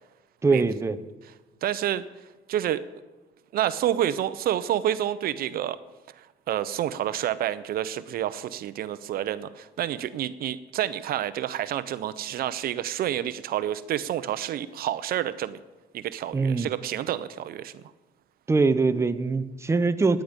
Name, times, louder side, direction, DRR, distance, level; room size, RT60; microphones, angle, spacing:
voice 1, 0.4-1.0 16.3-16.7 18.5-20.2, right 4 dB, 15° right, 11 dB, 0.8 m, -23 dB
voice 2, 1.6-2.0 2.5-2.8 3.5-5.8 6.2-15.6 15.9-17.7, right 11 dB, 60° right, 14 dB, 0.6 m, -29 dB
18.0 x 10.5 x 5.2 m, 1.2 s
cardioid pair, 110°, 17 cm